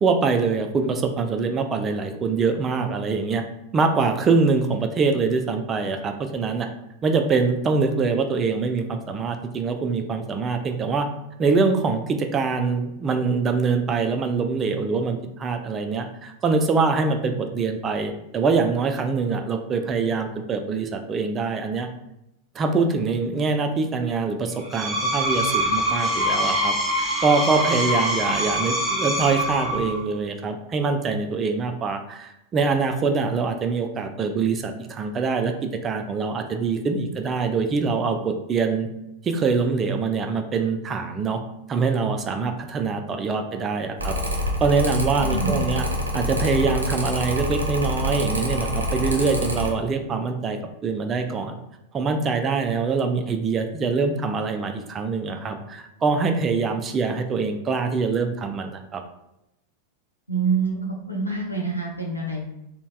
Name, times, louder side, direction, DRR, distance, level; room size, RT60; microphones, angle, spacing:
voice 1, 0.0-3.4 3.7-6.7 7.0-11.1 11.4-21.9 22.5-38.9 39.2-41.4 41.7-44.2 44.6-45.8 46.1-51.6 51.9-59.0, right 4 dB, 25° right, 6 dB, 0.4 m, -24 dB
Screech, 24.6-30.1, equal, 5° left, 0.9 m, -24 dB
Mechanical fan, 44.0-49.7, equal, 75° right, 0.6 m, -26 dB
voice 2, 45.2-45.6 60.3-62.5, right 4 dB, 90° left, -3 dB, 0.7 m, -26 dB
3.9 x 2.1 x 2.3 m, 0.86 s
figure-of-eight pair, 90°, 0 cm